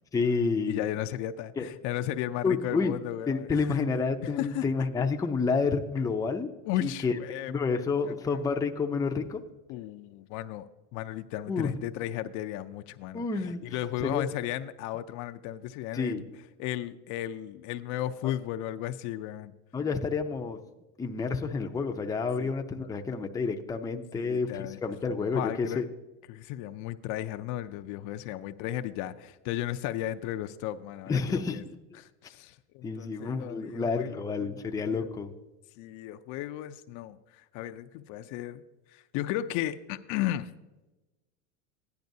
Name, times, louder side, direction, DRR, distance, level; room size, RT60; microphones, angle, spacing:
voice 1, 0.1-0.8 1.6-1.7 2.4-2.9 3.3-6.5 6.8-7.2 7.5-9.4 11.5-11.7 13.1-14.2 15.9-16.2 18.2-18.3 19.7-20.6 21.0-25.9 31.1-31.7 32.8-35.3, left 4 dB, 10° left, 4 dB, 0.5 m, -29 dB
voice 2, 0.7-3.8 4.2-4.7 6.6-8.4 9.7-16.2 16.6-19.5 22.4-22.5 24.2-24.8 25.3-25.9 26.3-31.6 32.0-34.2 34.9-35.1 35.8-38.6 38.9-40.5, left 13 dB, 60° left, 10 dB, 0.5 m, -35 dB
15.0 x 10.5 x 2.7 m, 1.1 s
supercardioid pair, 120°, 35 cm